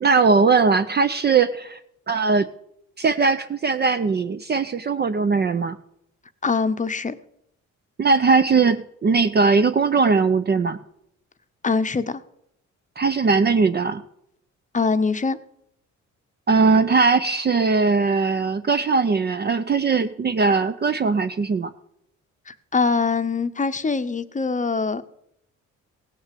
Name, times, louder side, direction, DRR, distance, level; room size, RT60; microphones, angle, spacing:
voice 1, 0.0-1.8 2.1-2.5 3.0-5.8 8.0-10.8 13.0-14.0 16.5-21.7, right 4 dB, 35° right, 10 dB, 0.6 m, -20 dB
voice 2, 6.4-7.2 11.6-12.2 14.7-15.4 22.5-25.0, left 4 dB, 25° left, 10 dB, 0.8 m, -23 dB
17.0 x 6.6 x 7.5 m, 0.75 s
cardioid pair, 90°, 30 cm